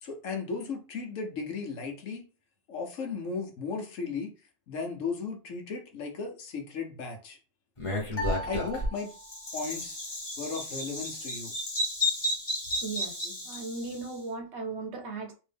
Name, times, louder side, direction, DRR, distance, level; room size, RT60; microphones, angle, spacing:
voice 1, 0.0-2.3 2.7-4.3 4.7-7.4 8.4-9.1 9.5-10.0 10.4-11.5 13.2-13.4, left 4 dB, 70° left, 2 dB, 1.2 m, -36 dB
Bird vocalization bird call bird song, 7.8-14.1, left 1 dB, 25° left, 1.0 m, -33 dB
sound 1, 8.1-9.6, left 1 dB, 55° left, 0.8 m, -38 dB
voice 2, 12.8-15.3, right 3 dB, 60° right, 3 dB, 1.0 m, -37 dB
3.2 x 2.7 x 3.4 m, 0.34 s
omnidirectional pair, 1.4 m